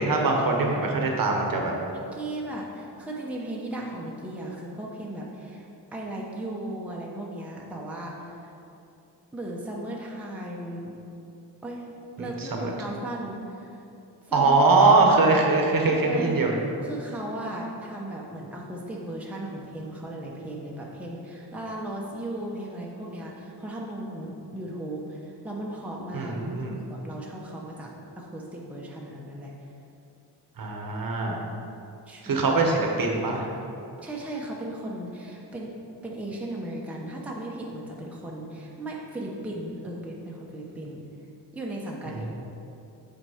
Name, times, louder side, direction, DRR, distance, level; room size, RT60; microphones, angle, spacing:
voice 1, 0.0-1.7 12.2-12.7 14.3-16.5 26.1-26.8 30.6-31.4 32.2-33.5, right 3 dB, 55° right, 1 dB, 1.0 m, -22 dB
voice 2, 1.9-8.5 9.3-10.9 11.6-11.9 12.2-13.8 14.2-14.6 15.9-16.5 16.8-27.9 28.2-29.5 32.1-32.5 34.0-35.7 36.0-41.0 41.5-42.3, right 1 dB, 5° right, -3 dB, 0.7 m, -36 dB
7.9 x 4.4 x 4.9 m, 2.6 s
wide cardioid pair, 155°, 42 cm